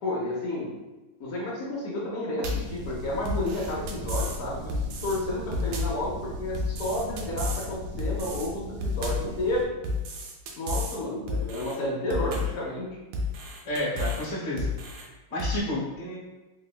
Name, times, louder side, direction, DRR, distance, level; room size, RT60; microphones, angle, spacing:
voice 1, 0.0-0.8 1.2-9.7 10.5-13.0, left 1 dB, 80° left, -5 dB, 0.7 m, -31 dB
sound 1, 2.4-2.7 3.3-4.4 4.7-5.2 5.5-6.0 6.5-7.7 8.0-8.5 8.8-9.3 9.8-11.0 11.3-11.8 12.1-12.6 13.1-14.3 14.6-15.1 15.4-15.6, left 2 dB, 90° right, 1.5 m, -31 dB
sound 2, 2.5-9.6, right 1 dB, 75° right, 1.0 m, -39 dB
voice 2, 13.6-16.2, left 1 dB, 45° left, -5 dB, 1.0 m, -31 dB
3.6 x 3.2 x 2.2 m, 1.1 s
omnidirectional pair, 2.2 m